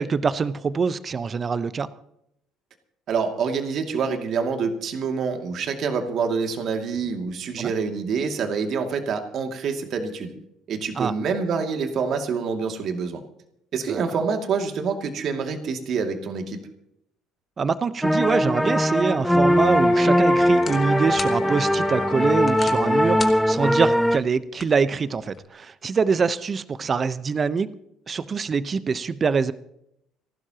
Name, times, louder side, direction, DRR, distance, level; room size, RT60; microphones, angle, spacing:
voice 1, 0.0-1.9 7.6-7.7 11.0-11.1 13.9-14.0 17.6-27.7 28.1-29.5, right 5 dB, 35° right, 14 dB, 1.0 m, -24 dB
voice 2, 3.1-10.3 10.7-13.2 13.7-16.6, right 5 dB, 55° right, 5 dB, 2.6 m, -26 dB
sound 1, 18.0-24.2, equal, ahead, 0.5 m, -20 dB
Wind instrument woodwind instrument, 19.4-23.3, left 11 dB, 80° left, 1.5 m, -34 dB
sound 2, 19.4-25.5, left 5 dB, 35° left, 1.9 m, -41 dB
30.0 x 12.0 x 3.0 m, 0.77 s
hypercardioid pair, 65°, 0 cm